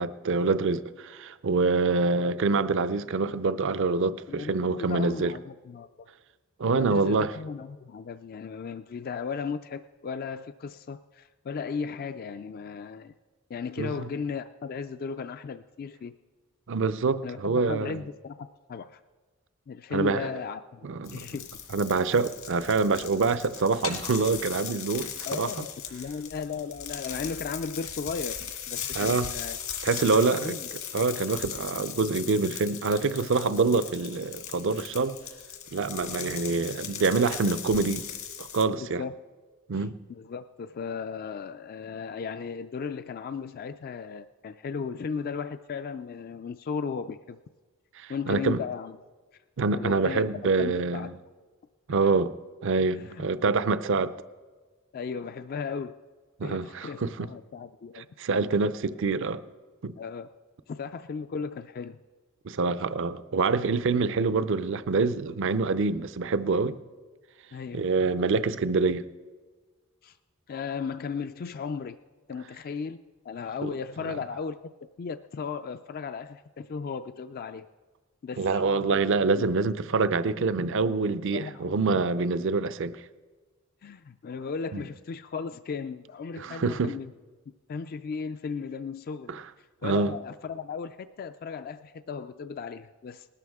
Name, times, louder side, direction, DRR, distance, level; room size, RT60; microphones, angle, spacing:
voice 1, 0.0-5.3 6.6-7.3 13.8-14.1 16.7-18.0 19.9-20.3 20.8-21.2 21.7-25.5 28.9-29.3 29.8-30.5 30.9-35.2 35.7-38.1 38.4-39.0 39.7-40.0 48.0-48.6 49.6-51.1 51.9-52.3 52.6-54.1 56.4-57.3 58.2-59.4 59.8-59.9 62.4-66.8 67.7-69.0 73.6-73.7 74.0-74.2 78.4-83.0 84.7-84.8 86.4-87.0 89.3-89.4 89.8-90.1, right 4 dB, 65° right, 0.5 m, -26 dB
voice 2, 2.0-2.3 4.3-6.1 6.7-13.1 13.5-16.1 17.2-19.0 19.7-21.5 25.3-29.6 30.1-30.7 38.8-39.1 39.7-47.4 48.1-49.0 49.7-51.1 52.9-53.3 54.9-55.9 56.4-58.1 60.0-60.3 60.7-62.0 66.3-66.4 67.5-67.9 70.0-70.2 70.5-72.0 72.3-73.0 73.2-74.6 75.0-77.7 78.2-78.8 79.4-79.5 80.4-80.5 81.3-82.3 83.8-87.1 87.7-93.3, left 5 dB, 45° left, 0.3 m, -36 dB
sound 1, 21.0-38.6, left 8 dB, 75° left, 1.9 m, -38 dB
19.5 x 12.5 x 3.6 m
head